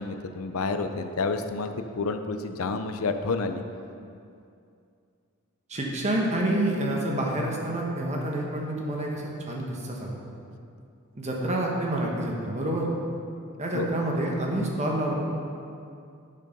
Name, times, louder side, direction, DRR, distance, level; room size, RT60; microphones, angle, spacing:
voice 1, 0.0-3.6 13.7-13.9, left 4 dB, 70° left, 8 dB, 0.6 m, -29 dB
voice 2, 5.7-10.2 11.1-12.9 13.6-15.2, right 1 dB, 30° right, -1 dB, 1.3 m, -28 dB
8.7 x 6.4 x 5.4 m, 2.5 s
head